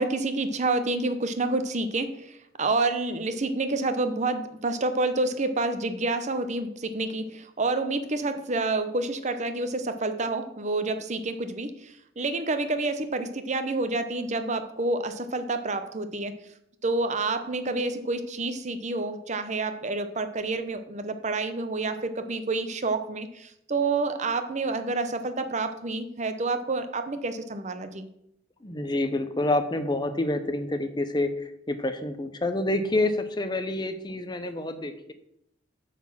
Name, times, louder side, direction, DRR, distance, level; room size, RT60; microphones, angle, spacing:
voice 1, 0.0-16.3 16.8-28.1, right 3 dB, 35° right, 9 dB, 0.8 m, -28 dB
voice 2, 28.6-35.1, left 2 dB, 20° left, 9 dB, 0.7 m, -28 dB
8.7 x 4.2 x 7.2 m, 0.78 s
head